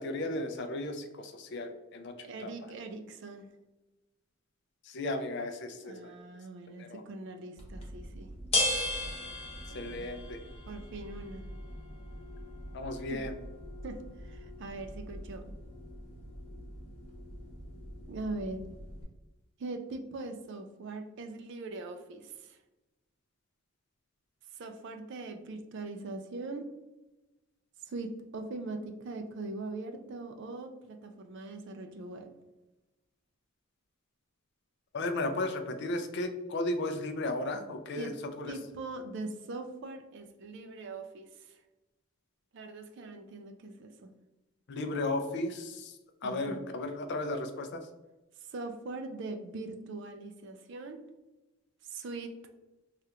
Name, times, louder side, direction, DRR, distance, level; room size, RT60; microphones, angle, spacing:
voice 1, 0.0-2.5 4.8-6.1 6.8-7.0 9.7-10.4 12.7-13.3 34.9-38.5 44.7-46.0 46.2-47.8, left 2 dB, 55° left, 7 dB, 0.4 m, -35 dB
voice 2, 2.2-3.5 5.8-8.3 9.7-10.2 10.7-11.5 13.1-13.2 13.8-15.5 18.1-18.6 19.6-22.6 24.5-26.7 27.8-32.3 38.0-38.2 38.4-41.6 42.5-44.1 46.2-46.6 48.4-51.0 51.8-52.5, right 2 dB, 55° right, 7 dB, 0.4 m, -41 dB
sound 1, 7.6-19.0, left 1 dB, 30° left, 0.8 m, -38 dB
3.3 x 2.4 x 2.8 m, 1.1 s
head